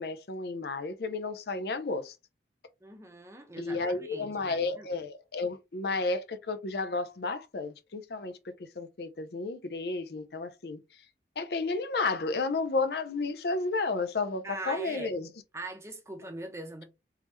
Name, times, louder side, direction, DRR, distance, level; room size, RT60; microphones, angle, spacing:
voice 1, 0.0-2.2 3.6-10.8 11.4-15.3, left 3 dB, 65° left, 0.5 m, -32 dB
voice 2, 2.8-4.9 14.4-15.1 15.5-16.8, right 2 dB, 15° right, 0.8 m, -41 dB
3.5 x 3.2 x 3.1 m
head